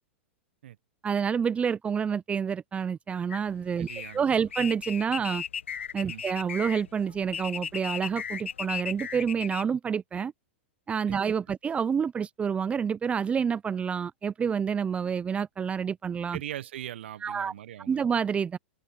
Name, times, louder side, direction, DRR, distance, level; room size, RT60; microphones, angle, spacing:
voice 1, 1.0-3.9 4.1-5.4 5.9-10.3 10.9-16.4 17.2-17.5 17.9-18.6, right 7 dB, 20° right, 0.8 m, -28 dB
sound 1, 3.3-9.6, left 7 dB, 80° left, 1.2 m, -36 dB
voice 2, 3.8-4.3 6.0-6.2 11.1-11.2 16.3-18.0, right 12 dB, 70° right, 1.3 m, -40 dB
open air
hypercardioid pair, 105°, 6 cm